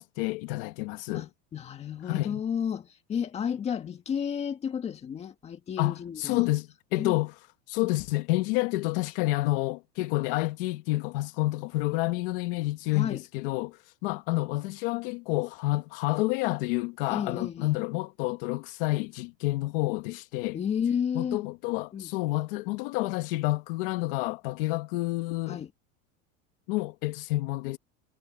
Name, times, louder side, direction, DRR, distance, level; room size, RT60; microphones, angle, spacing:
voice 1, 0.0-1.3 2.1-2.4 5.8-7.3 7.7-20.6 21.1-25.6 26.7-27.8, left 19 dB, 55° left, 1.3 m, -29 dB
voice 2, 1.1-6.5 7.0-7.2 12.9-13.2 17.1-17.8 20.5-21.4 21.9-22.1 25.5-25.7, left 8 dB, 20° left, 1.8 m, -32 dB
supercardioid pair, 170°, 34 cm